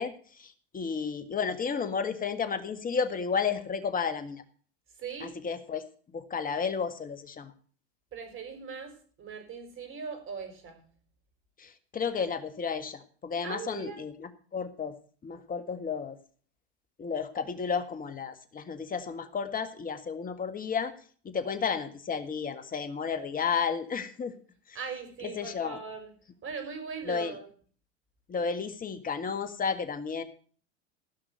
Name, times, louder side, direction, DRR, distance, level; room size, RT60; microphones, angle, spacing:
voice 1, 0.0-4.4 5.2-5.8 6.1-7.5 11.6-14.9 15.2-16.2 17.0-20.9 21.2-24.3 24.7-24.8 25.2-25.8 27.0-27.3 28.3-30.2, left 6 dB, 25° left, 10 dB, 1.8 m, -32 dB
voice 2, 4.9-5.4 8.1-10.8 13.4-14.0 24.7-26.1 26.4-27.5, right 5 dB, 40° right, 6 dB, 5.7 m, -40 dB
15.5 x 6.1 x 7.6 m, 0.43 s
hypercardioid pair, 95°, 33 cm